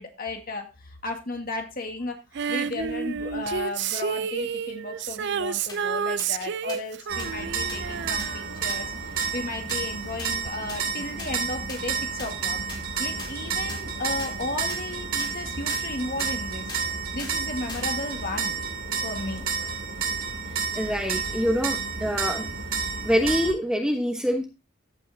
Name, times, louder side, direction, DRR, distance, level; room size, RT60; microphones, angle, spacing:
voice 1, 0.0-2.2 2.5-12.6 13.0-16.8 17.1-18.6 19.0-19.8, left 2 dB, 45° left, 4 dB, 1.8 m, -34 dB
Female singing, 2.3-9.3 10.5-10.6, right 6 dB, 55° right, 0.5 m, -30 dB
sound 1, 5.7-5.8 6.2-6.3 6.7-6.8 7.2-7.3 7.7-7.8 8.2-8.3 8.7-8.8 9.2-9.3 9.7-9.8 10.2-10.3 10.7-10.8 11.2-11.3 11.7-11.8 12.2-12.3 12.7-12.8 13.2-13.3 13.7-13.8 14.2-14.3 14.7-14.8 15.2-15.3 15.7-15.8 16.2-16.3 16.7-16.9 17.2-17.4 17.7-17.9 18.2-18.3, left 3 dB, 25° left, 2.7 m, -39 dB
sound 2, 7.1-23.5, right 5 dB, 90° right, 2.7 m, -30 dB
voice 2, 20.7-22.5 23.0-24.4, equal, 5° right, 3 dB, 1.1 m, -25 dB
14.5 x 5.7 x 2.7 m, 0.28 s
head